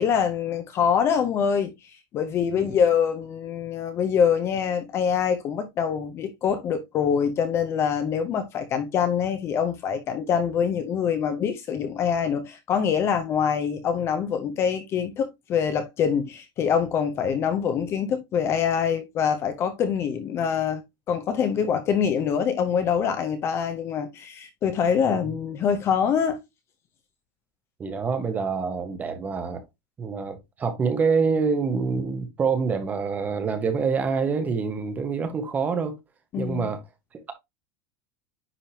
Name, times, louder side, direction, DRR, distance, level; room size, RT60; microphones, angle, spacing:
voice 1, 0.0-1.7 2.1-20.8 21.1-26.4 36.3-36.7, left 7 dB, 25° left, 0.6 m, -24 dB
voice 2, 27.8-29.6 30.0-36.0 36.4-36.8 37.1-37.3, right 5 dB, 15° right, 0.9 m, -26 dB
9.9 x 3.6 x 2.8 m
supercardioid pair, 180°, 11 cm